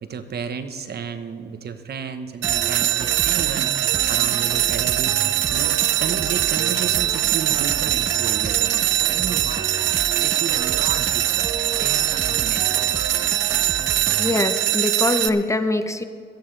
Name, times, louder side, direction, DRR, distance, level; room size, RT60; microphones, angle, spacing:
voice 1, 0.0-5.2 5.5-9.7 10.2-13.0, right 6 dB, 55° right, 9 dB, 1.1 m, -33 dB
sound 1, 2.4-14.4, right 4 dB, 20° right, 0.6 m, -33 dB
sound 2, 2.4-15.3, right 12 dB, 70° right, 0.7 m, -22 dB
voice 2, 14.2-16.0, left 2 dB, 15° left, 9 dB, 0.8 m, -23 dB
18.5 x 14.0 x 3.4 m, 2.2 s
cardioid pair, 90°, 20 cm